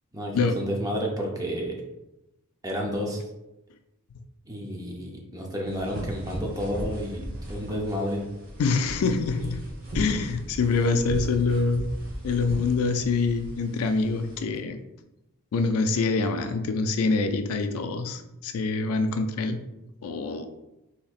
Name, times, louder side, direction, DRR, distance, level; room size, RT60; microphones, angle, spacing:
voice 1, 0.1-1.8 2.6-3.2 4.5-8.3, equal, 15° right, -1 dB, 0.6 m, -31 dB
sound 1, 5.6-14.4, equal, 45° right, 1.0 m, -37 dB
voice 2, 8.6-9.6 9.9-11.9 12.2-14.8 15.5-19.6 20.0-20.5, left 4 dB, 70° left, 7 dB, 0.3 m, -25 dB
4.1 x 2.9 x 2.4 m, 0.95 s
head